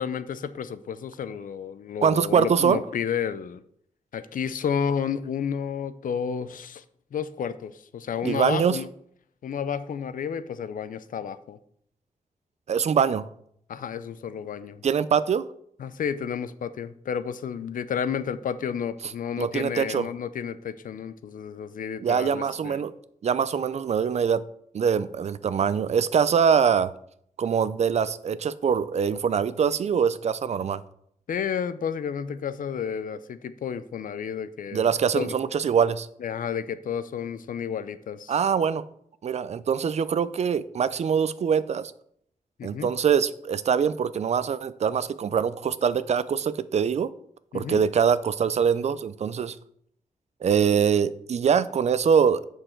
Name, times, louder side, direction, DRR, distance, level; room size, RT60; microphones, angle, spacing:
voice 1, 0.0-3.6 4.1-6.8 7.1-8.9 9.4-11.6 13.7-14.8 15.8-22.8 31.3-35.4 36.2-38.3 42.6-42.9 47.5-47.8, left 7 dB, 80° left, 14 dB, 0.5 m, -31 dB
voice 2, 2.0-2.8 8.2-8.8 12.7-13.3 14.8-15.5 19.4-20.1 22.0-22.9 23.2-24.4 24.7-26.9 27.4-30.8 34.7-36.1 38.3-38.8 39.2-41.9 42.6-47.1 47.5-49.6 50.4-52.5, right 7 dB, 55° right, 15 dB, 0.4 m, -23 dB
7.7 x 6.5 x 4.5 m, 0.69 s
wide cardioid pair, 165°, 14 cm